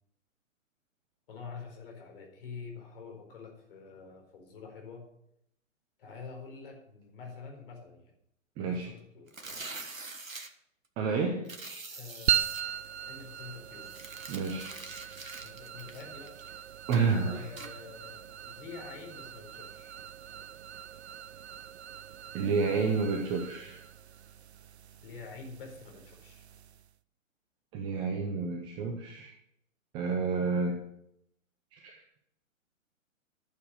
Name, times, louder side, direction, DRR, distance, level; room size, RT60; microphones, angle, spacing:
voice 1, 1.3-5.1 6.0-8.1 8.6-9.6 11.9-12.5 13.1-13.9 15.4-19.9 25.0-26.4, left 5 dB, 40° left, 2 dB, 4.2 m, -47 dB
voice 2, 8.6-8.9 11.0-11.5 14.3-14.7 16.9-17.5 22.3-23.8 27.7-29.3 29.9-30.8 31.7-31.9, right 4 dB, 10° right, 3 dB, 0.6 m, -30 dB
sound 1, 9.3-10.5 11.4-12.6 13.8-16.5 16.9-17.1 17.6-17.7, right 3 dB, 75° right, 1.6 m, -44 dB
sound 2, 12.3-26.9, right 10 dB, 55° right, 0.6 m, -39 dB
12.0 x 7.0 x 6.4 m, 0.76 s
figure-of-eight pair, 125°, 40 cm